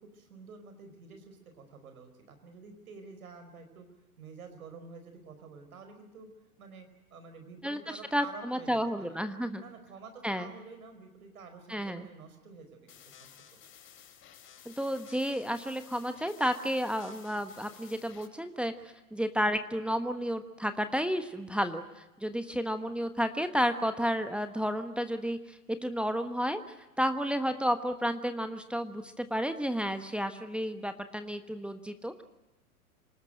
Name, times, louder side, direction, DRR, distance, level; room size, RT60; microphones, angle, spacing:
voice 1, 0.0-3.9 4.2-6.3 6.6-9.2 9.6-13.3 22.5-22.6, right 5 dB, 70° right, 7 dB, 5.0 m, -49 dB
voice 2, 8.1-9.6 10.2-10.5 11.7-12.1 14.6-18.7 19.1-26.6 27.0-32.2, equal, ahead, 8 dB, 1.2 m, -31 dB
sound 1, 12.9-18.3, left 9 dB, 25° left, 4.2 m, -54 dB
27.0 x 19.0 x 9.0 m, 1.0 s
figure-of-eight pair, 105°, 45 cm